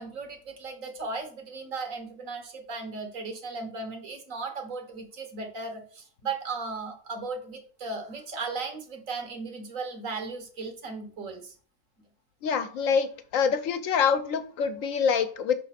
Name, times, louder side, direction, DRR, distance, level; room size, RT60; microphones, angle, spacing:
voice 1, 0.0-11.6, right 4 dB, 85° right, 5 dB, 1.7 m, -36 dB
voice 2, 12.4-13.1 13.3-15.5, left 6 dB, 85° left, 10 dB, 1.1 m, -25 dB
5.8 x 3.8 x 5.8 m, 0.43 s
omnidirectional pair, 1.4 m